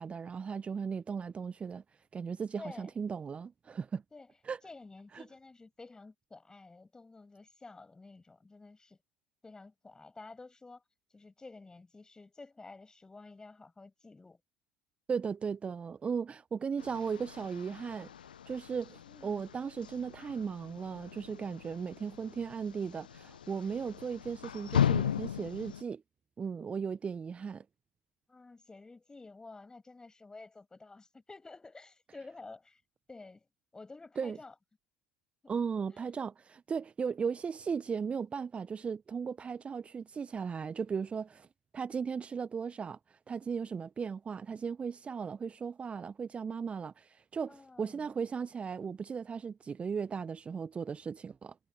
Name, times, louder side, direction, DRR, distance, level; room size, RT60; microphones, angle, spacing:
voice 1, 0.0-1.8 2.1-4.0 4.4-4.6 5.1-5.2 15.1-18.1 18.5-26.0 26.4-27.6 34.2-34.4 35.5-41.5 41.7-51.6, right 6 dB, 25° right, 1.1 m, -37 dB
voice 2, 2.6-2.9 4.1-4.4 4.6-9.0 9.4-10.8 11.1-14.4 19.1-19.5 28.3-32.8 33.1-33.5 33.7-34.5 35.4-35.6 35.9-36.1 47.5-48.2, left 3 dB, 15° left, 7.9 m, -51 dB
sound 1, 16.8-25.8, left 9 dB, 75° left, 0.8 m, -37 dB
figure-of-eight pair, 70°, 5 cm